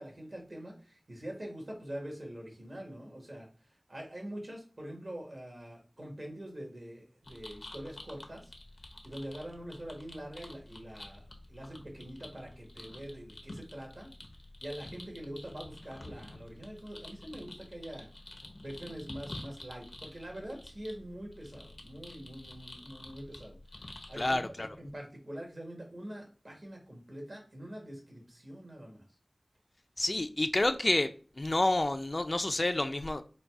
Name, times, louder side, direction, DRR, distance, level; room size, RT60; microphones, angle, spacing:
voice 1, 0.0-3.5 3.9-8.5 9.0-14.1 14.6-18.1 18.6-29.0, right 1 dB, 65° right, 0 dB, 1.6 m, -44 dB
sound 1, 7.2-24.4, left 1 dB, 80° left, 0.8 m, -49 dB
voice 2, 24.2-24.7 30.0-31.1 31.4-33.2, left 2 dB, 55° left, 8 dB, 0.4 m, -29 dB
4.0 x 2.3 x 4.6 m, 0.39 s
wide cardioid pair, 45°, 0 cm